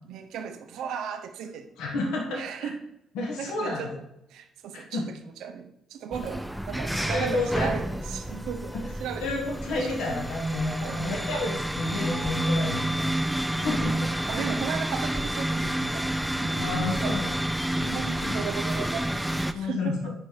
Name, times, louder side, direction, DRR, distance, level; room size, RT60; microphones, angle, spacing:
voice 1, 0.1-1.7 2.3-2.9 3.4-4.0 4.3-10.0 10.8-11.1 14.3-17.3 17.7-20.1, right 7 dB, 70° right, 7 dB, 0.7 m, -36 dB
voice 2, 1.8-2.7 3.2-3.9 4.7-5.0 6.9-7.7 9.2-14.5 16.6-17.4 18.2-18.4 19.5-20.0, left 2 dB, 75° left, 0 dB, 1.9 m, -31 dB
sound 1, 6.1-19.5, right 1 dB, 5° right, 0.7 m, -29 dB
8.9 x 5.2 x 4.7 m, 0.84 s
hypercardioid pair, 50°, 0 cm